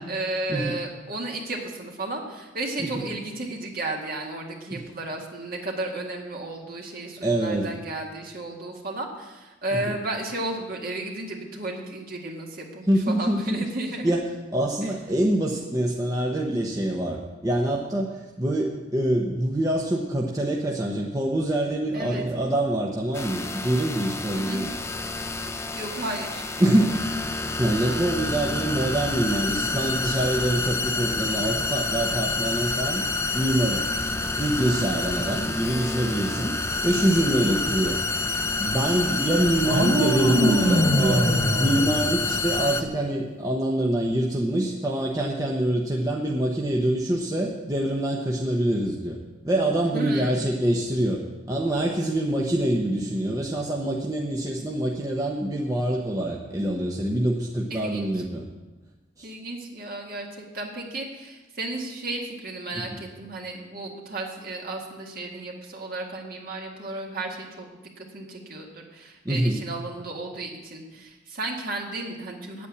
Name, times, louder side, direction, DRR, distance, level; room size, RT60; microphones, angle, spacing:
voice 1, 0.0-14.2 14.8-14.9 21.9-22.3 24.3-24.6 25.7-26.7 34.6-34.9 49.8-50.4 57.7-58.2 59.2-67.7 68.0-72.7, right 2 dB, 50° right, 0 dB, 1.9 m, -33 dB
voice 2, 7.2-7.7 12.9-13.4 14.0-14.2 14.5-24.7 26.6-27.0 27.6-33.1 33.3-33.9 34.4-36.5 36.8-38.0 38.6-41.3 41.6-49.2 49.4-58.4 59.2-59.3 62.9-63.0 69.2-69.6, right 1 dB, 20° right, -1 dB, 0.9 m, -25 dB
sound 1, 23.1-42.8, left 3 dB, 15° left, 0.5 m, -28 dB
sound 2, 39.6-42.8, equal, 65° right, 2.4 m, -24 dB
8.9 x 8.5 x 8.4 m, 1.2 s
head